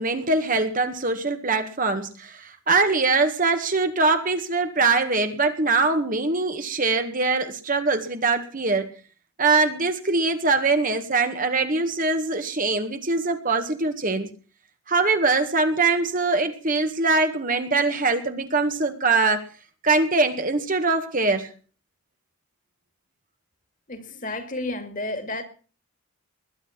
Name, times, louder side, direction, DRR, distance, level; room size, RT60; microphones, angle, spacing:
voice 1, 0.0-8.9 9.4-14.3 14.9-19.4 19.8-21.5, right 3 dB, 40° right, 1.8 m, -22 dB
voice 2, 23.9-25.4, left 2 dB, 35° left, 2.4 m, -31 dB
21.0 x 10.5 x 5.9 m
head